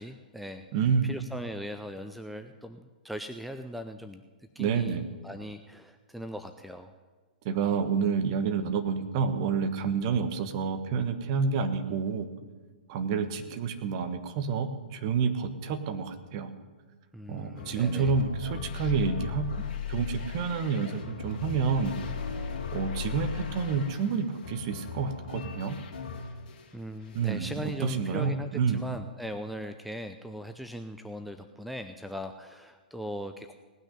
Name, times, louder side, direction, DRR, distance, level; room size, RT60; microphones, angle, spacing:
voice 1, 0.0-0.7 1.0-4.2 4.6-5.0 5.2-6.9 17.1-18.1 26.7-33.5, equal, ahead, 7 dB, 0.5 m, -39 dB
voice 2, 0.7-1.1 4.6-5.1 7.4-12.3 12.9-16.5 17.3-22.0 22.7-25.7 27.1-28.8, right 5 dB, 40° right, 8 dB, 1.3 m, -29 dB
sound 1, 17.6-26.7 27.0-27.9, left 6 dB, 50° left, 2.4 m, -37 dB
18.0 x 6.3 x 9.7 m, 1.4 s
figure-of-eight pair, 110°, 5 cm